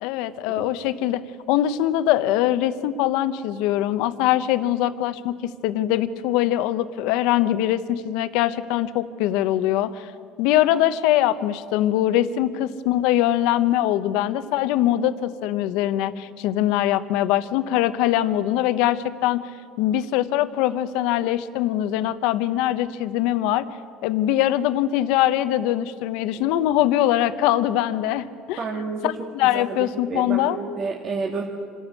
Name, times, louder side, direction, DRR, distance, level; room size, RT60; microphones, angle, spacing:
voice 1, 0.0-10.1 10.4-19.4 19.8-23.7 24.0-30.6, left 13 dB, 75° left, 12 dB, 0.9 m, -22 dB
voice 2, 28.6-29.1 29.4-31.4, right 4 dB, 45° right, 0 dB, 1.9 m, -30 dB
26.5 x 12.5 x 8.3 m, 2.3 s
supercardioid pair, 100°, 0 cm